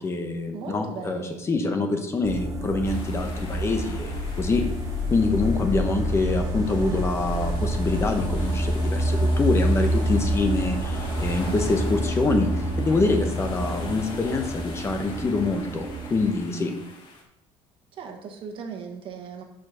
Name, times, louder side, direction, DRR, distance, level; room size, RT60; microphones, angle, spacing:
voice 1, 0.0-4.6 5.1-16.7, left 3 dB, 25° left, 5 dB, 0.9 m, -25 dB
voice 2, 0.5-1.4 17.9-19.4, right 6 dB, 50° right, 4 dB, 1.3 m, -37 dB
sound 1, 2.2-16.4, right 1 dB, 30° right, 0.9 m, -27 dB
sound 2, 2.8-17.2, left 3 dB, 45° left, 1.8 m, -42 dB
7.5 x 4.9 x 6.0 m, 0.84 s
cardioid pair, 145°, 11 cm